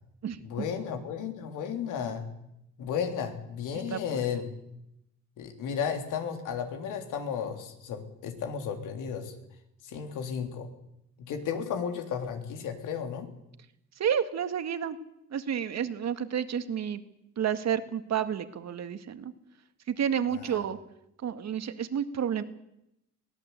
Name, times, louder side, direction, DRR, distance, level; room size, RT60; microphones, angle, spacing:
voice 1, 0.4-2.3 2.8-4.5 5.4-9.3 9.8-10.7 11.2-13.3 20.3-20.6, left 7 dB, 90° left, 5 dB, 3.5 m, -34 dB
voice 2, 3.9-4.2 14.0-15.0 15.3-17.0 17.4-19.3 19.9-20.8 21.2-22.4, right 8 dB, 60° right, 10 dB, 2.0 m, -30 dB
22.5 x 17.0 x 8.3 m, 0.83 s
cardioid pair, 90°, 30 cm